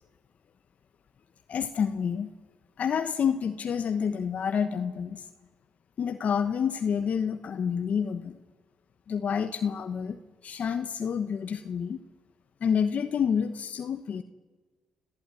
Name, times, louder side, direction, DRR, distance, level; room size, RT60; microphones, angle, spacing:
voice 1, 1.5-2.3 2.8-5.3 6.0-8.4 9.1-12.0 12.6-14.2, left 7 dB, 60° left, 9 dB, 1.1 m, -28 dB
26.5 x 15.0 x 9.9 m, 1.3 s
supercardioid pair, 65°, 3 cm